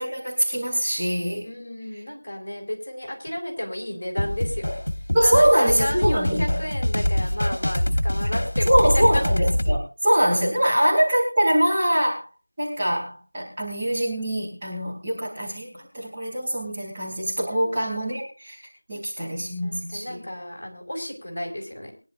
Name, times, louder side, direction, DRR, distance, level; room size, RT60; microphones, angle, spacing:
voice 1, 0.0-1.4 5.1-6.6 8.6-12.3 12.6-18.6 18.9-20.2, equal, 15° right, -7 dB, 2.9 m, -23 dB
voice 2, 1.4-4.8 5.2-9.2 17.5-17.8 18.9-22.0, left 1 dB, 25° left, -3 dB, 4.6 m, -33 dB
sound 1, 4.2-9.8, left 1 dB, 60° left, 1.4 m, -24 dB
22.5 x 11.0 x 2.5 m, 0.33 s
figure-of-eight pair, 175°, 0 cm